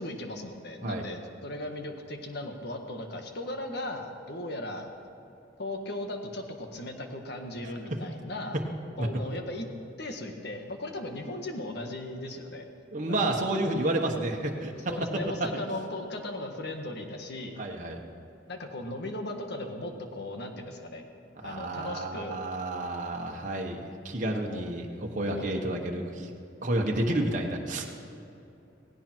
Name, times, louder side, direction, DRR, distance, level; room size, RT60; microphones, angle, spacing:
voice 1, 0.0-4.9 5.6-8.6 9.0-9.7 10.0-12.7 13.1-13.2 14.9-17.6 18.5-21.0 21.4-22.3 24.4-24.6 25.3-25.5 27.1-27.3, left 1 dB, 60° left, 4 dB, 1.7 m, -37 dB
voice 2, 7.6-8.0 9.0-9.1 12.9-14.9 17.6-18.0 21.4-26.3 26.6-27.9, right 1 dB, 40° right, 0 dB, 1.3 m, -30 dB
17.5 x 17.0 x 4.6 m, 2.8 s
head